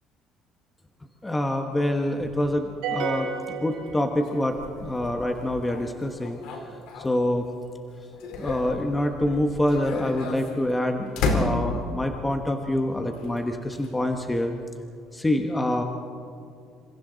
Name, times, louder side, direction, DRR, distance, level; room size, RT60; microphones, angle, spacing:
voice 1, 1.2-6.4 7.0-7.5 8.4-14.5 15.1-15.8, left 1 dB, 10° left, 4 dB, 1.1 m, -26 dB
sound 1, 2.2-7.5 7.9-12.1 13.1-14.6, left 3 dB, 70° left, 3.8 m, -34 dB
sound 2, 2.8-4.5, right 5 dB, 80° right, 5.2 m, -31 dB
28.0 x 27.0 x 4.0 m, 2.5 s
cardioid pair, 160°, 0 cm